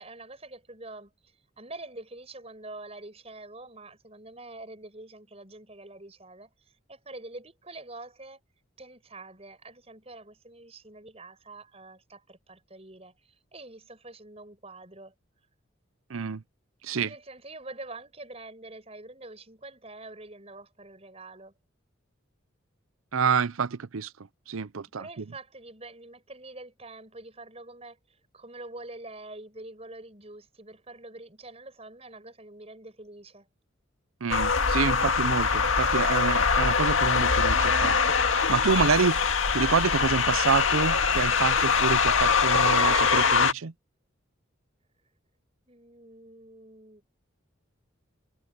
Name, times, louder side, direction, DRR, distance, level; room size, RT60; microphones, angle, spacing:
voice 1, 0.0-8.4 8.8-15.1 17.0-21.5 25.0-33.5 45.7-47.0, right 2 dB, 30° right, 7.2 m, -45 dB
voice 2, 16.1-16.4 16.9-17.1 23.1-24.1 24.5-25.0 34.2-38.0 38.3-39.2 39.5-43.7, right 5 dB, 90° right, 0.6 m, -27 dB
sound 1, 34.3-43.5, left 5 dB, 75° left, 2.0 m, -23 dB
head